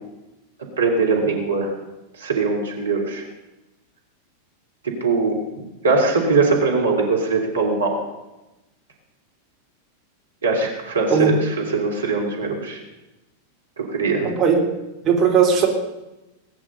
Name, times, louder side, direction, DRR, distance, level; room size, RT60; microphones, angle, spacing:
voice 1, 0.8-1.7 2.2-3.2 5.0-5.4 5.8-7.9 10.4-11.3 11.7-12.8 13.8-14.3, right 4 dB, 75° right, 0 dB, 3.1 m, -21 dB
voice 2, 14.2-14.6 15.0-15.7, right 6 dB, 30° right, 0 dB, 3.2 m, -17 dB
19.5 x 9.9 x 6.8 m, 1.0 s
figure-of-eight pair, 90°, 0 cm